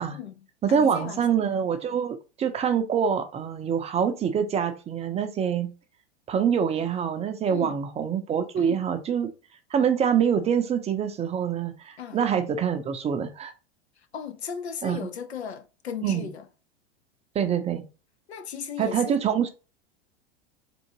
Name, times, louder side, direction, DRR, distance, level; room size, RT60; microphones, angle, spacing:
voice 1, 0.1-1.4 7.5-7.8 8.6-8.8 12.0-12.2 14.1-16.5 18.3-19.2, left 7 dB, 85° left, 0.6 m, -36 dB
voice 2, 0.6-5.7 6.3-9.3 9.7-13.5 14.8-15.0 16.0-16.3 17.3-17.8 18.8-19.5, right 7 dB, 20° right, 0.5 m, -25 dB
3.7 x 2.5 x 2.9 m
figure-of-eight pair, 90°, 32 cm